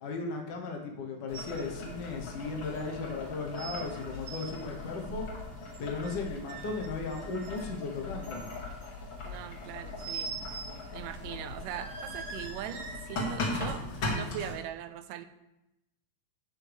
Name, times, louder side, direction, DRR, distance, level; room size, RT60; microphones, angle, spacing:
voice 1, 0.0-5.3 5.8-8.5, left 4 dB, 80° left, 1 dB, 0.9 m, -36 dB
Boiling, 1.3-14.5, left 2 dB, 40° left, 2.5 m, -39 dB
sound 1, 1.3-1.6 1.9-2.0 2.8-2.9 3.6-3.8 4.1-4.5 5.6-6.2 6.5-7.7 8.2-8.9 10.0-10.8 11.1-11.2 11.6-13.4 14.0-14.1, right 5 dB, 60° right, 1.2 m, -43 dB
voice 2, 9.2-10.4 10.9-13.8 14.1-15.3, right 11 dB, 80° right, 11 dB, 2.1 m, -40 dB
15.5 x 6.1 x 3.5 m, 0.92 s
omnidirectional pair, 3.9 m